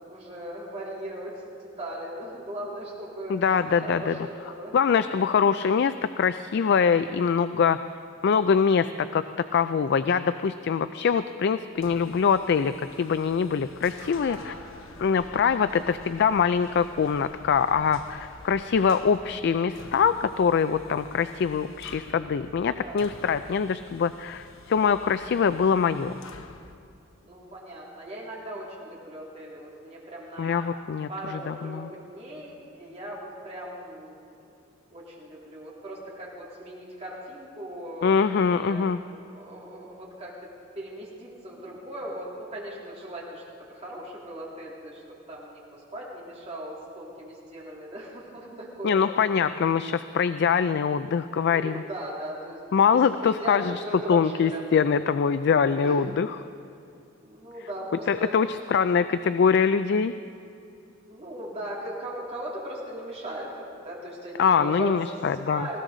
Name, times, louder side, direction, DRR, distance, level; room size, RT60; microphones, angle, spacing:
voice 1, 0.0-4.8 5.2-5.3 11.0-11.4 14.2-14.7 15.6-15.7 19.2-19.3 22.5-23.0 23.6-23.8 27.2-30.7 31.1-34.5 34.9-38.8 39.3-40.5 40.7-43.4 43.7-49.1 51.4-52.6 52.9-54.6 55.8-56.1 57.2-58.3 61.1-65.8, right 1 dB, 35° right, -5 dB, 3.4 m, -39 dB
voice 2, 3.3-4.3 4.7-7.8 8.2-9.2 9.5-14.5 15.0-26.1 30.4-31.9 38.0-39.0 48.8-51.8 52.7-53.8 54.1-56.4 58.1-60.1 64.4-65.7, left 6 dB, 55° left, 12 dB, 0.4 m, -23 dB
sound 1, 11.8-26.8, left 2 dB, 80° left, 0.9 m, -48 dB
19.5 x 16.5 x 3.9 m, 2.6 s
head